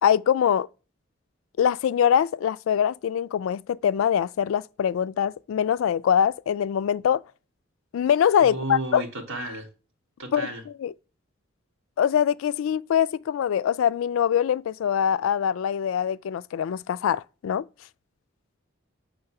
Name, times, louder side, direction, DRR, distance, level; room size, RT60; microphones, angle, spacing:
voice 1, 0.0-0.7 1.6-7.2 7.9-9.0 10.3-10.9 12.0-17.7, left 8 dB, 80° left, 0.3 m, -23 dB
voice 2, 8.4-9.7 10.2-10.6, right 2 dB, 80° right, 1.6 m, -32 dB
6.7 x 3.4 x 5.8 m
head